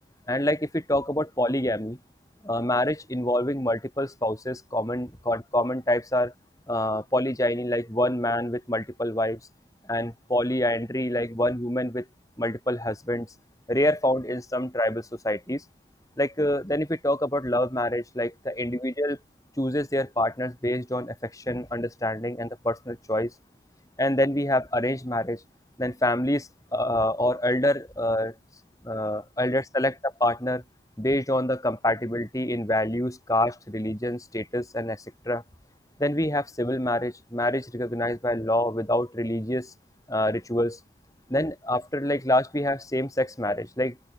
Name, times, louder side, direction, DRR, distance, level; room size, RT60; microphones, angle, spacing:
voice 1, 0.3-2.0 2.4-6.3 6.7-9.4 9.9-12.0 12.4-13.3 13.7-15.6 16.2-19.2 19.6-23.3 24.0-25.4 25.8-28.3 28.9-29.9 30.2-30.6 31.0-35.4 36.0-39.7 40.1-40.8 41.3-44.0, left 1 dB, 20° left, 5.7 m, -26 dB
open air
head